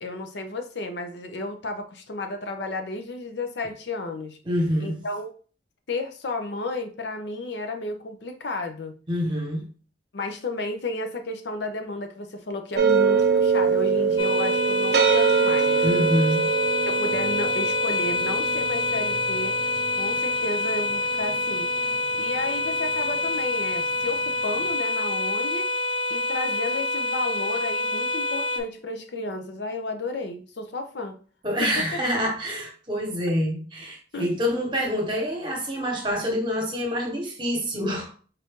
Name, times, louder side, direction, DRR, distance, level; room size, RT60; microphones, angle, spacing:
voice 1, 0.0-4.4 4.8-5.3 5.9-8.9 10.1-15.9 16.8-19.6 20.0-21.7 22.2-25.8 26.1-31.2 31.6-32.0 34.1-34.3, left 2 dB, 70° left, 0.6 m, -32 dB
voice 2, 4.4-5.0 9.1-9.6 15.8-16.5 31.4-38.1, equal, 25° right, 1.1 m, -26 dB
sound 1, 12.7-21.9, right 6 dB, 65° right, 0.5 m, -24 dB
sound 2, 14.2-28.6, left 2 dB, 30° left, 0.4 m, -26 dB
4.1 x 2.6 x 3.6 m
head